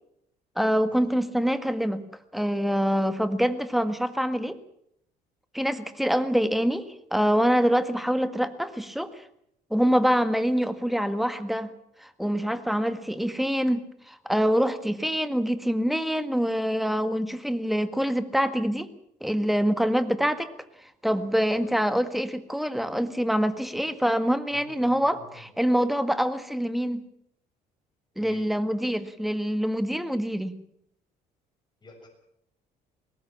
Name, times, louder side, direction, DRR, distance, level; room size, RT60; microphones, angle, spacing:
voice 1, 0.6-2.0 2.3-4.6 5.5-9.2 9.7-11.7 12.0-18.9 19.2-20.5 20.8-27.0 28.2-30.6, equal, ahead, 10 dB, 1.7 m, -25 dB
voice 2, 24.5-25.5 28.2-28.5 31.8-32.1, left 1 dB, 25° left, 2 dB, 6.7 m, -49 dB
21.5 x 18.5 x 7.3 m, 0.74 s
cardioid pair, 110°, 17 cm